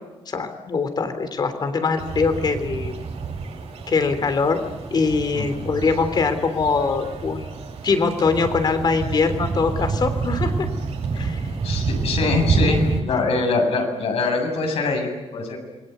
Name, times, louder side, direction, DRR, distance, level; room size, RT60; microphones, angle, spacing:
voice 1, 0.3-2.9 3.9-4.6 4.9-7.5 7.8-10.7 11.1-11.4 13.1-13.2, left 4 dB, 40° left, 9 dB, 3.4 m, -22 dB
sound 1, 2.0-13.0, right 4 dB, 80° right, 7.8 m, -28 dB
voice 2, 5.3-5.6 11.2-11.3 11.6-15.6, left 3 dB, 75° left, 2 dB, 7.9 m, -23 dB
28.0 x 22.5 x 8.2 m, 1.1 s
wide cardioid pair, 170°, 11 cm